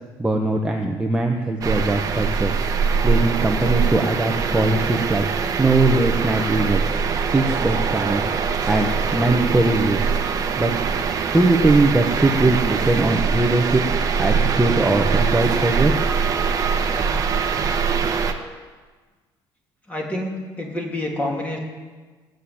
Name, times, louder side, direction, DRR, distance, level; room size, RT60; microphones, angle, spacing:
voice 1, 0.2-2.6 3.0-5.2 5.6-6.8 7.3-8.2 8.7-10.1 10.6-10.7 11.3-13.8 14.2-15.9, right 2 dB, 10° right, 1 dB, 1.1 m, -20 dB
sound 1, 1.6-18.3, right 6 dB, 35° right, 1.2 m, -22 dB
voice 2, 19.9-21.6, left 1 dB, 15° left, 0 dB, 2.9 m, -27 dB
16.5 x 7.9 x 8.6 m, 1.4 s
cardioid pair, 135°, 10 cm